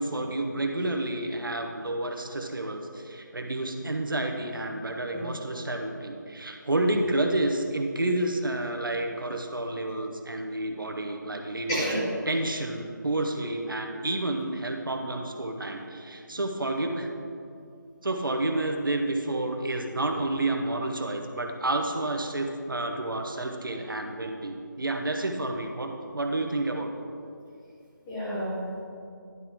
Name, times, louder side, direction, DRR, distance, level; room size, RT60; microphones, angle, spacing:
voice 1, 0.0-17.1 18.0-26.9, right 2 dB, 90° right, 3 dB, 1.1 m, -30 dB
voice 2, 11.7-12.0 28.1-28.8, equal, 10° left, -10 dB, 1.1 m, -30 dB
11.0 x 3.7 x 5.9 m, 2.5 s
figure-of-eight pair, 170°, 11 cm